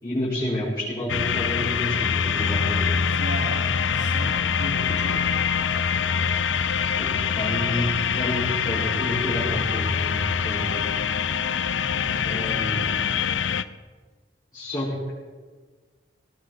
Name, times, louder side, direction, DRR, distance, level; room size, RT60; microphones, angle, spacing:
voice 1, 0.0-2.9 4.9-5.1 7.0-7.1 7.3-10.8 12.2-12.8 14.5-15.1, equal, 25° left, -12 dB, 5.3 m, -29 dB
sound 1, 1.1-13.6, left 6 dB, 85° left, 0.6 m, -24 dB
voice 2, 2.9-5.3 11.9-13.1, right 1 dB, 75° right, -1 dB, 3.4 m, -38 dB
19.0 x 18.0 x 4.1 m, 1.4 s
head